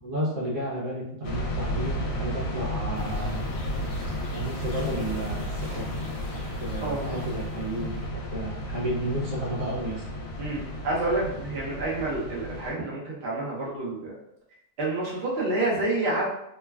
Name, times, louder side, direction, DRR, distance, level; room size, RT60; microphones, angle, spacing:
voice 1, 0.0-3.4 4.3-6.0 6.6-10.0, right 1 dB, 80° right, -4 dB, 1.3 m, -32 dB
sound 1, 1.2-12.7, left 1 dB, 80° left, 1.1 m, -33 dB
sound 2, 2.9-8.0, right 1 dB, 40° left, 0.7 m, -42 dB
voice 2, 6.8-7.3 10.4-14.1 14.8-16.2, right 2 dB, 50° right, -5 dB, 0.9 m, -28 dB
3.1 x 2.2 x 2.2 m, 0.79 s
omnidirectional pair, 1.7 m